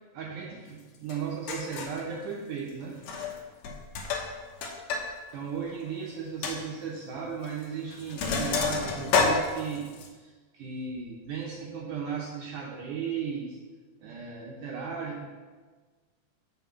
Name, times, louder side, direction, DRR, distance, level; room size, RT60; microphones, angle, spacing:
voice 1, 0.1-3.0 5.3-13.6 14.0-15.3, right 6 dB, 70° right, -2 dB, 2.2 m, -36 dB
Sink (filling or washing), 1.1-1.2 1.5-2.0 3.0-3.4 3.6-5.1 5.4-5.5 5.9-6.0 6.4-6.6 7.4-7.6 7.9-10.1, left 4 dB, 65° left, 2.0 m, -29 dB
7.7 x 5.3 x 7.2 m, 1.4 s
omnidirectional pair, 4.0 m